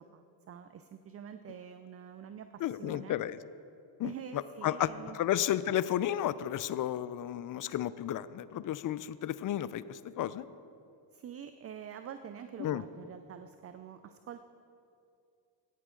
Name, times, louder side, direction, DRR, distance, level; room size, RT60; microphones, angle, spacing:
voice 1, 0.0-3.2 4.0-5.2 11.1-14.4, right 8 dB, 30° right, 9 dB, 0.4 m, -46 dB
voice 2, 2.6-3.4 4.0-10.5 12.6-12.8, left 11 dB, 45° left, 16 dB, 0.4 m, -33 dB
13.5 x 9.0 x 3.7 m, 2.5 s
supercardioid pair, 70°, 50 cm